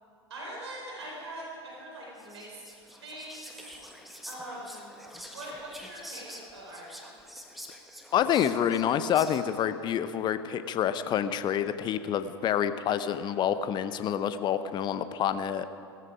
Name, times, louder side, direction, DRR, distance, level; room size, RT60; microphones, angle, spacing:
voice 1, 0.3-3.8 4.3-4.9 5.3-7.1, right 1 dB, 70° right, -4 dB, 4.4 m, -43 dB
Whispering, 2.2-9.7, equal, ahead, 1.4 m, -47 dB
voice 2, 8.1-15.6, left 9 dB, 30° left, 12 dB, 0.8 m, -27 dB
18.0 x 14.5 x 5.0 m, 2.5 s
figure-of-eight pair, 90°, 15 cm